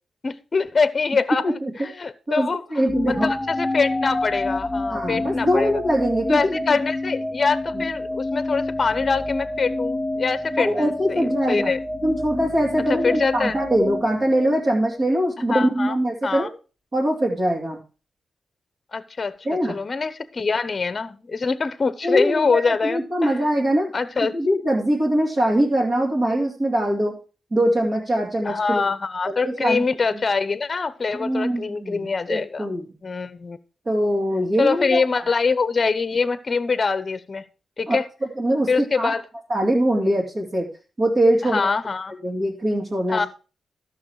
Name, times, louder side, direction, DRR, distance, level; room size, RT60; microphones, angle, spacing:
voice 1, 0.2-2.6 3.0-5.7 6.3-11.8 12.9-13.6 15.5-16.0 16.2-16.5 18.9-19.4 19.7-23.3 23.9-24.4 28.4-32.7 33.0-33.6 34.6-37.4 37.8-38.0 38.7-39.2 41.5-42.1 43.1-43.3, left 4 dB, 40° left, 0.9 m, -24 dB
voice 2, 2.3-3.3 4.9-6.8 10.6-11.7 12.0-16.5 16.9-17.8 19.4-19.8 22.0-23.9 24.3-27.2 27.5-28.9 29.2-29.8 30.1-30.2 31.1-32.9 33.9-35.0 37.9-38.0 38.4-39.1 39.5-40.7 41.0-41.7 42.2-43.2, right 1 dB, 40° right, 2.6 m, -22 dB
sound 1, 2.9-15.0, left 2 dB, 10° left, 0.5 m, -28 dB
12.5 x 6.5 x 4.7 m
cardioid pair, 100°, 0 cm